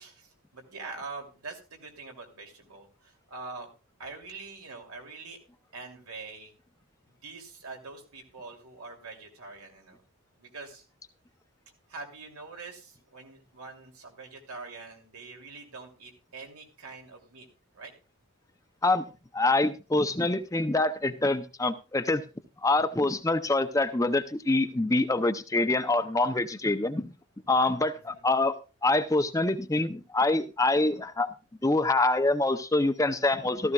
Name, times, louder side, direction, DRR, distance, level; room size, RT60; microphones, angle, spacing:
voice 1, 0.0-2.9 3.3-3.7 4.0-5.4 5.7-6.5 7.2-10.0 10.4-10.8 11.9-17.5 17.7-17.9 28.1-28.2, right 3 dB, 85° right, 2 dB, 2.9 m, -44 dB
voice 2, 19.3-22.2 22.6-27.1 27.5-28.6 28.8-31.3 31.6-33.7, left 2 dB, 15° left, 10 dB, 0.5 m, -25 dB
15.0 x 14.0 x 2.3 m, 0.31 s
head